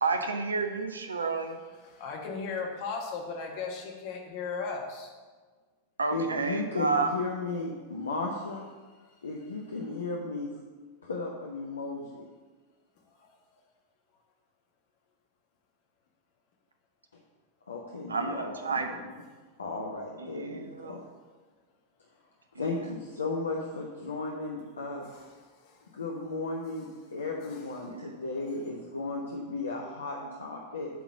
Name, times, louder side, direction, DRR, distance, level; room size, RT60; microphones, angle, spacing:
voice 1, 0.0-1.6 6.0-7.1 18.1-18.9 20.2-21.0 22.6-22.7 27.8-28.2, right 4 dB, 75° right, 6 dB, 0.7 m, -30 dB
voice 2, 1.8-5.1 13.2-13.3 25.0-25.8 27.5-27.6, left 5 dB, 45° left, 1 dB, 1.7 m, -37 dB
voice 3, 6.1-8.7 9.2-10.5 11.0-12.3 17.7-19.1 19.6-21.0 22.6-25.0 25.9-26.8 27.1-30.9, left 3 dB, 70° left, -1 dB, 1.0 m, -35 dB
9.3 x 4.0 x 7.0 m, 1.4 s
figure-of-eight pair, 90°, 0 cm